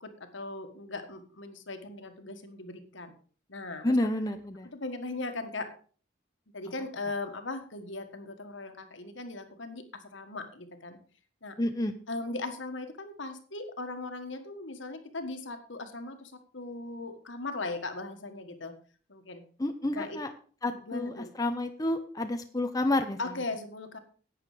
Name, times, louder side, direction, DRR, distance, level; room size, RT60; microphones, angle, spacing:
voice 1, 0.0-3.1 3.5-4.0 4.7-5.7 6.5-11.0 11.4-11.5 12.1-18.7 19.1-19.4 19.9-20.2 20.6-21.3 23.2-24.0, left 2 dB, 70° left, 7 dB, 1.7 m, -38 dB
voice 2, 3.8-4.7 11.6-12.0 19.6-20.3 20.6-23.3, left 1 dB, 20° left, 6 dB, 0.8 m, -30 dB
11.0 x 8.8 x 5.0 m, 0.42 s
head